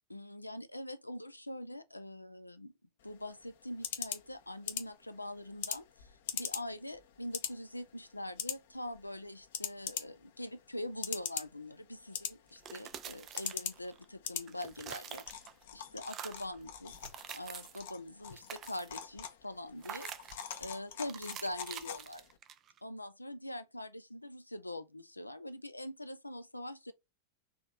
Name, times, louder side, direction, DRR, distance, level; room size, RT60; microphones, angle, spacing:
voice 1, 0.1-2.7 3.0-15.4 15.7-17.0 17.3-22.2 22.8-26.9, left 1 dB, 85° left, 0.6 m, -43 dB
sound 1, 3.0-22.4, left 9 dB, 55° left, 0.8 m, -44 dB
sound 2, 12.5-14.1 14.4-15.6 16.0-16.5 16.9-17.9 18.2-19.1 19.8-20.6 21.1-22.8, right 9 dB, 30° right, 0.5 m, -47 dB
4.5 x 3.1 x 3.6 m
figure-of-eight pair, 90°, 0 cm